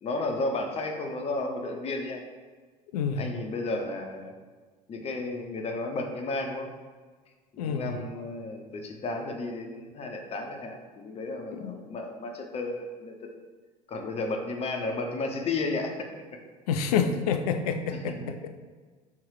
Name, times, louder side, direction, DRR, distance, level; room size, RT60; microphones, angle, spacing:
voice 1, 0.0-2.2 3.2-4.3 4.9-6.7 7.6-13.1 13.9-16.0 18.2-18.3, left 2 dB, 30° left, 3 dB, 0.7 m, -33 dB
voice 2, 2.9-3.2 7.6-8.0 11.5-11.8 16.7-18.5, left 6 dB, 65° left, 8 dB, 0.5 m, -28 dB
3.6 x 3.1 x 4.6 m, 1.4 s
figure-of-eight pair, 65°, 21 cm